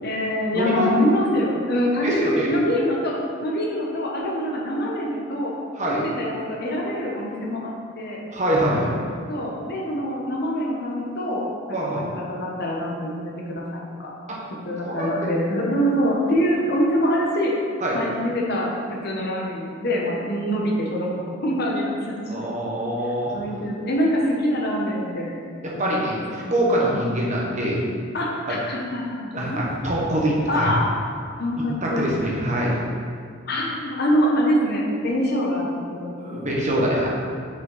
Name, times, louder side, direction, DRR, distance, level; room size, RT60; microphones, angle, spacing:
voice 1, 0.0-3.1 3.4-5.5 5.9-8.2 9.3-14.1 14.7-17.5 17.9-18.7 19.0-21.1 21.4-22.5 23.3-25.3 25.7-26.0 26.4-26.6 26.9-27.1 28.1-29.6 30.5-30.9 31.4-32.1 33.5-36.4, equal, 50° left, -2 dB, 0.9 m, -25 dB
voice 2, 0.5-0.9 2.0-2.5 5.7-6.0 8.3-8.9 11.7-12.1 14.3-14.4 14.8-15.3 17.8-18.0 22.3-23.4 25.6-27.9 29.3-30.7 31.6-32.8 36.2-37.1, right 1 dB, 35° right, -4 dB, 1.2 m, -24 dB
5.8 x 5.7 x 4.0 m, 2.2 s
head